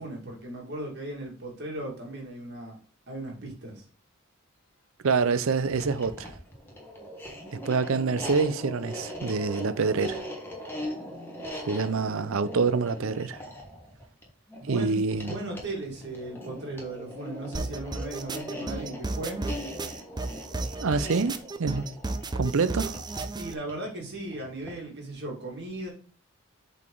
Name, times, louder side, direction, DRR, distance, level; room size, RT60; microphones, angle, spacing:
voice 1, 0.0-2.8 3.1-3.8 14.6-19.4 23.3-25.9, right 2 dB, 50° right, 2.2 m, -37 dB
voice 2, 5.0-6.3 7.5-10.2 11.7-13.4 14.7-15.4 20.8-21.9 22.4-23.0, right 4 dB, 70° right, 0.5 m, -26 dB
sound 1, 5.7-24.9, equal, 10° left, 1.3 m, -40 dB
sound 2, 17.5-23.5, right 3 dB, 20° right, 0.4 m, -34 dB
7.4 x 4.1 x 3.8 m
head